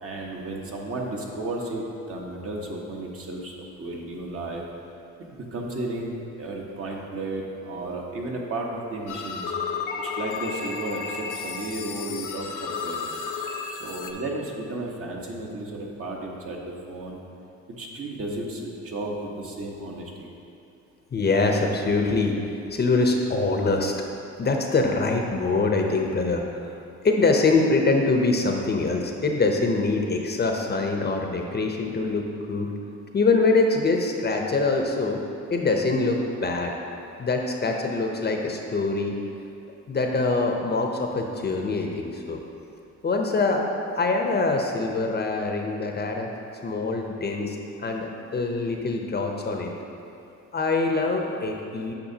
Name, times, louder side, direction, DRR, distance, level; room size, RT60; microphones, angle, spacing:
voice 1, 0.0-4.6 5.2-9.5 10.0-13.2 13.7-17.2 17.8-20.3, right 2 dB, 50° right, -1 dB, 1.1 m, -33 dB
sound 1, 9.1-14.1, left 5 dB, 85° left, 0.6 m, -32 dB
voice 2, 21.1-23.9 24.4-26.6 27.0-32.7 33.1-35.2 35.5-36.8 37.2-39.1 39.9-42.4 43.0-43.7 44.0-46.3 46.6-49.7 50.5-51.9, left 3 dB, 35° left, 2 dB, 0.7 m, -24 dB
8.7 x 5.7 x 2.8 m, 2.7 s
cardioid pair, 90°, 30 cm